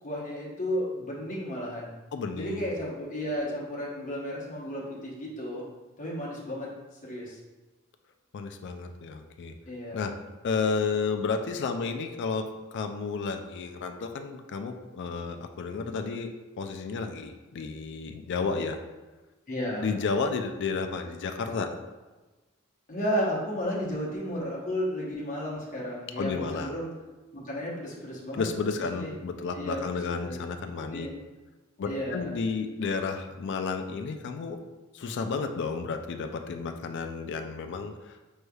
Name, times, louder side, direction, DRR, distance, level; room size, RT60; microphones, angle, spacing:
voice 1, 0.0-1.9 2.4-5.6 6.0-6.7 7.0-7.4 9.7-10.1 15.6-15.9 19.5-20.1 22.9-26.9 27.3-28.4 28.9-29.1 29.5-29.8 30.1-30.4 30.9-31.1 31.8-32.3, equal, 40° left, -5 dB, 0.9 m, -33 dB
voice 2, 2.1-2.7 8.3-9.5 9.9-10.2 10.4-16.3 16.6-18.8 19.8-21.7 26.2-26.8 28.3-31.1 31.8-34.6 34.9-38.1, left 4 dB, 55° left, 6 dB, 0.3 m, -32 dB
5.2 x 3.2 x 2.3 m, 1.2 s
head